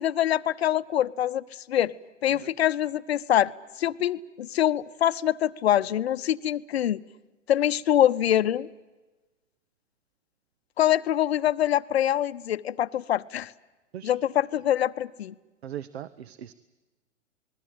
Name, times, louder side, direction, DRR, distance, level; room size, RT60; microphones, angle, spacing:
voice 1, 0.0-1.9 2.2-3.5 3.8-7.0 7.5-8.7 10.8-13.5 14.0-15.3, left 11 dB, 55° left, 15 dB, 0.8 m, -24 dB
voice 2, 15.6-16.5, right 10 dB, 55° right, 17 dB, 1.0 m, -39 dB
28.5 x 21.0 x 7.7 m, 1.2 s
figure-of-eight pair, 110°, 38 cm